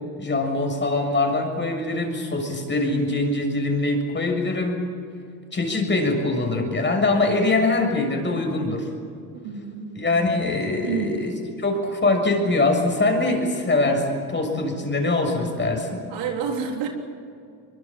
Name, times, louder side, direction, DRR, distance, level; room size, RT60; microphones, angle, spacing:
voice 1, 0.2-4.9 5.5-8.9 9.9-11.3 11.6-16.0, left 2 dB, 25° left, 4 dB, 6.8 m, -23 dB
voice 2, 9.3-9.9 10.8-11.1 16.1-16.9, right 6 dB, 75° right, 2 dB, 3.9 m, -29 dB
23.5 x 23.5 x 7.6 m, 2.4 s
supercardioid pair, 75°, 44 cm